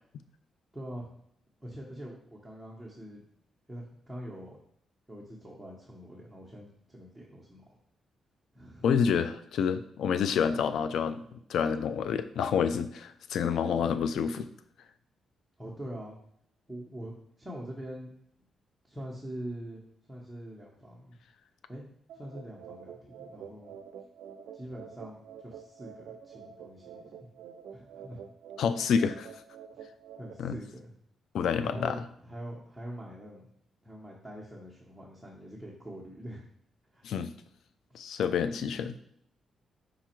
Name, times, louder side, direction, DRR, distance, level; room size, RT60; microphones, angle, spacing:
voice 1, 0.7-1.1 1.6-3.2 3.7-4.6 5.1-7.8 8.5-8.9 15.6-16.1 16.7-18.1 18.8-21.2 21.7-21.9 22.1-23.8 24.5-27.3 27.7-28.2 30.2-30.9 31.6-33.5 33.8-36.4 36.9-37.1, equal, 5° right, -5 dB, 0.9 m, -44 dB
voice 2, 8.8-14.5 28.6-29.3 30.4-30.6 31.3-32.0 37.0-37.3 37.9-39.0, left 7 dB, 80° left, 11 dB, 0.3 m, -28 dB
sound 1, 22.1-30.3, right 7 dB, 85° right, 0.3 m, -48 dB
5.0 x 2.3 x 4.4 m, 0.69 s
cardioid pair, 80°, 0 cm